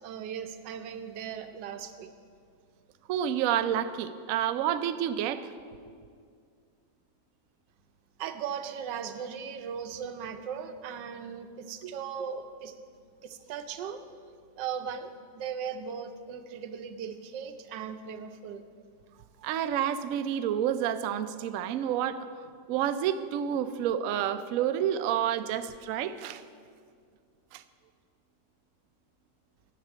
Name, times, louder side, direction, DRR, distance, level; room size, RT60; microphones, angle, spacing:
voice 1, 0.0-2.1 8.2-12.7 13.2-14.0 14.6-18.6 19.1-19.5, right 7 dB, 90° right, 9 dB, 1.4 m, -38 dB
voice 2, 3.1-5.5 11.8-11.9 19.4-22.3 22.7-26.4 27.5-27.6, right 10 dB, 75° right, 10 dB, 0.8 m, -29 dB
10.5 x 5.9 x 8.2 m, 2.2 s
omnidirectional pair, 1.9 m